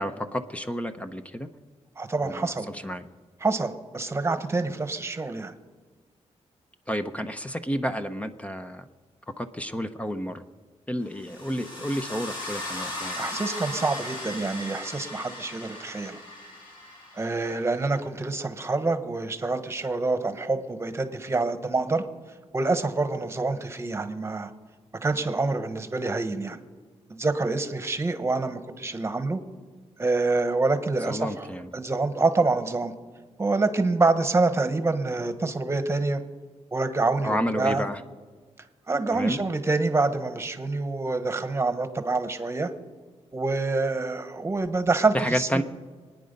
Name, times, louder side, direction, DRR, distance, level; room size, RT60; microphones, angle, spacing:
voice 1, 0.0-1.5 2.2-3.1 6.9-8.8 9.4-10.4 10.9-13.3 31.1-31.7 37.2-38.0 39.1-39.4 45.1-45.6, equal, 10° left, 9 dB, 0.7 m, -30 dB
voice 2, 2.0-2.7 3.4-5.5 13.1-16.2 17.2-22.0 22.5-24.5 25.0-26.6 27.1-29.4 30.0-32.9 33.4-36.2 36.7-37.9 38.9-42.7 43.3-45.6, right 3 dB, 20° right, 9 dB, 1.2 m, -26 dB
sound 1, 11.1-18.0, left 1 dB, 45° left, 5.1 m, -38 dB
25.0 x 9.6 x 5.3 m, 1.4 s
cardioid pair, 110°, 12 cm